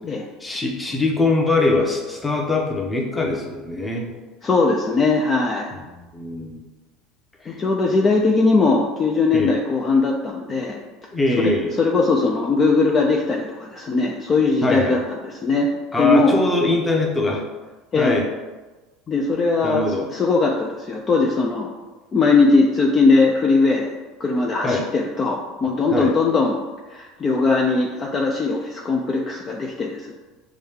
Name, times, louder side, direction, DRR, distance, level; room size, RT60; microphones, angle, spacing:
voice 1, 0.4-4.1 5.7-5.8 6.1-6.6 7.4-7.6 9.3-9.5 11.1-11.7 14.6-15.0 15.9-17.4 17.9-18.2 19.6-20.1 24.6-24.8 25.9-26.1, left 2 dB, 15° left, 0 dB, 0.9 m, -22 dB
voice 2, 4.4-5.7 7.4-10.8 11.8-15.7 16.0-16.4 17.9-18.2 19.1-21.7 22.1-23.9 24.2-26.6 26.9-30.1, left 3 dB, 35° left, 0 dB, 0.5 m, -20 dB
6.2 x 2.3 x 3.6 m, 1.2 s
supercardioid pair, 95°, 0 cm